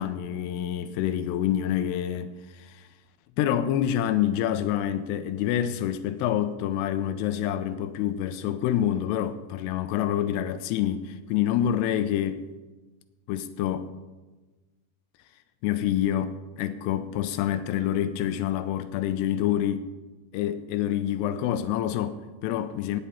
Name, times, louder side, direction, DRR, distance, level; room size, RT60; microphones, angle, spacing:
voice 1, 0.0-2.9 3.4-12.5 13.3-13.9 15.6-19.9 20.3-23.0, left 11 dB, 85° left, 2.7 m, -27 dB
18.5 x 9.8 x 4.3 m
omnidirectional pair, 4.7 m